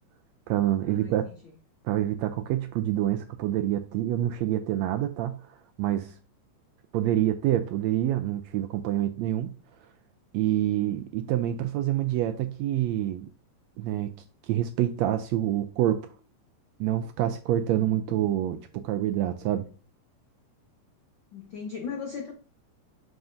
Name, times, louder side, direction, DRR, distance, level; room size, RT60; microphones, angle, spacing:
voice 1, 0.5-1.3 1.8-6.1 6.9-9.5 10.3-13.3 13.8-14.1 14.5-16.1 16.8-19.7, right 12 dB, 80° right, 1.6 m, -27 dB
voice 2, 21.3-22.3, left 6 dB, 75° left, 1.1 m, -37 dB
7.2 x 6.1 x 2.5 m
omnidirectional pair, 3.5 m